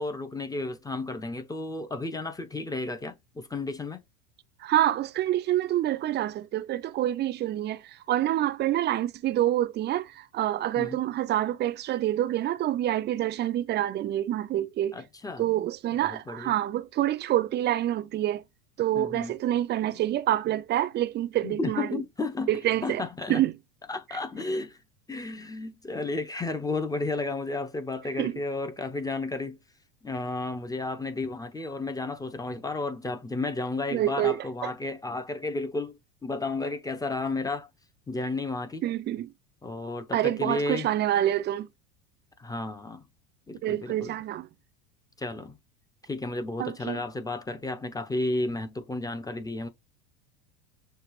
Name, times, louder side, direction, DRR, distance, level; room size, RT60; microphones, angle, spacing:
voice 1, 0.0-4.0 10.8-11.0 14.9-15.4 16.0-16.5 18.9-19.3 21.4-22.5 22.8-23.4 23.9-24.8 25.1-29.6 30.0-37.7 38.1-38.8 39.6-40.9 42.4-43.0 43.5-44.2 45.2-45.6 46.0-49.7, left 3 dB, 10° left, 0.9 m, -32 dB
voice 2, 4.6-15.0 15.4-18.4 18.8-22.0 22.5-23.0 23.3-23.5 28.2-28.3 33.9-34.7 38.8-39.3 40.1-41.7 43.6-44.5 46.6-47.0, right 13 dB, 35° right, 0.6 m, -27 dB
6.6 x 2.5 x 3.2 m
hypercardioid pair, 95°, 30 cm